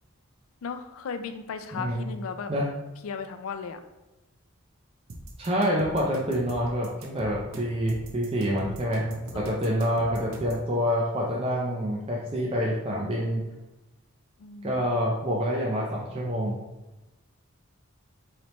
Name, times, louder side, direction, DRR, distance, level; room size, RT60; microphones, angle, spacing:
voice 1, 0.6-2.5 3.0-3.8 9.3-10.3 14.4-14.9, left 5 dB, 80° left, 8 dB, 0.4 m, -37 dB
voice 2, 1.7-2.1 2.5-2.7 5.4-13.4 14.6-16.6, equal, 25° right, -3 dB, 0.5 m, -27 dB
sound 1, 5.1-10.7, right 1 dB, 85° right, 0.6 m, -42 dB
4.2 x 3.2 x 3.0 m, 1.0 s
head